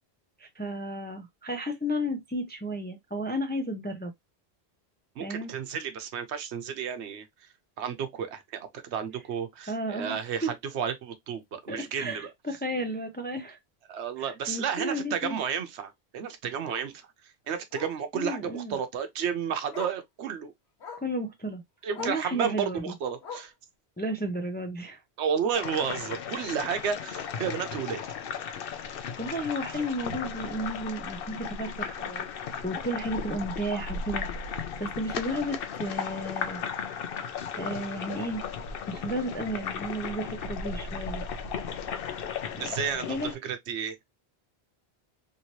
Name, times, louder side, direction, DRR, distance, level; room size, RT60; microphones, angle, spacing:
voice 1, 0.4-4.1 5.2-5.5 9.7-10.5 11.7-13.6 14.2-15.4 18.1-18.8 21.0-21.6 22.0-22.9 24.0-25.0 28.8-32.3 32.6-34.3 34.6-36.6 37.6-38.4 38.9-41.2 42.5-42.7 43.1-43.3, equal, 15° left, 0.3 m, -33 dB
voice 2, 5.2-7.3 7.8-12.3 13.9-17.1 17.5-20.5 21.8-23.5 25.2-28.0 42.6-43.2 43.4-44.0, right 7 dB, 85° right, 1.0 m, -32 dB
Bark, 10.2-10.4 10.8-10.9 11.3-11.4 11.6-11.7 13.1-13.2 15.7-15.8 16.7-16.9 17.7-18.0 19.2-19.3 19.7-20.1 20.8-21.1 21.9-22.3 23.2-23.6 24.6-24.7, left 6 dB, 80° left, 1.3 m, -42 dB
sound 1, 25.5-43.4, left 6 dB, 65° left, 0.7 m, -35 dB
3.1 x 2.8 x 2.9 m
omnidirectional pair, 1.1 m